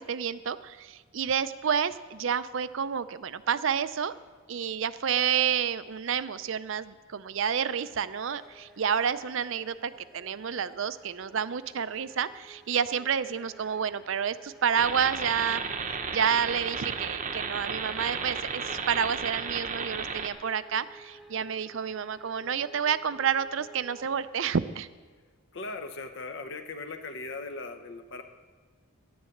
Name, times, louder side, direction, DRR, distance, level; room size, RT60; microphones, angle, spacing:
voice 1, 0.0-4.1 4.5-24.9, right 7 dB, 60° right, 14 dB, 0.5 m, -29 dB
sound 1, 7.6-24.2, right 2 dB, ahead, 1.0 m, -54 dB
sound 2, 14.8-20.3, right 5 dB, 35° right, 0.8 m, -34 dB
voice 2, 25.5-28.2, left 3 dB, 55° left, 6 dB, 0.8 m, -38 dB
11.0 x 10.0 x 7.8 m, 1.5 s
head